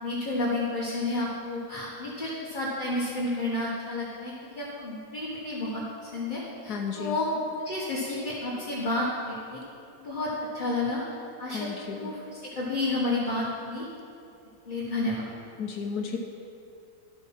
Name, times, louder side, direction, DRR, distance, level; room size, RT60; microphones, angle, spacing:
voice 1, 0.0-7.3 7.6-9.6 10.0-11.0 11.4-11.7 11.9-12.2 12.5-13.8 14.6-15.3, left 2 dB, 30° left, -6 dB, 1.4 m, -31 dB
voice 2, 6.7-7.2 11.5-12.1 15.6-16.2, left 6 dB, 70° left, 2 dB, 1.3 m, -33 dB
12.0 x 8.1 x 5.8 m, 2.7 s
omnidirectional pair, 1.8 m